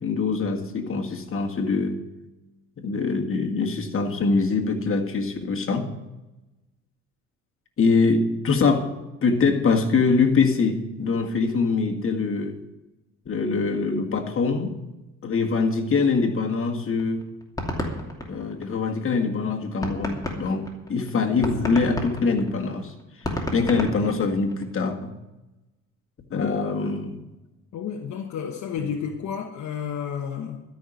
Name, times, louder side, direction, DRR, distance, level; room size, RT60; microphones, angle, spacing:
voice 1, 0.0-2.0 2.8-5.9 7.8-8.9 9.2-12.6 13.3-14.7 15.2-17.3 18.3-22.9 23.5-25.1 26.3-27.2 28.8-28.9, left 4 dB, 45° left, 1.9 m, -23 dB
sound 1, 17.0-19.0 19.4-19.5 19.8-24.7, left 1 dB, 10° left, 2.6 m, -31 dB
voice 2, 27.7-30.6, left 7 dB, 65° left, 1.2 m, -31 dB
13.0 x 5.9 x 9.3 m
cardioid pair, 90°, 30 cm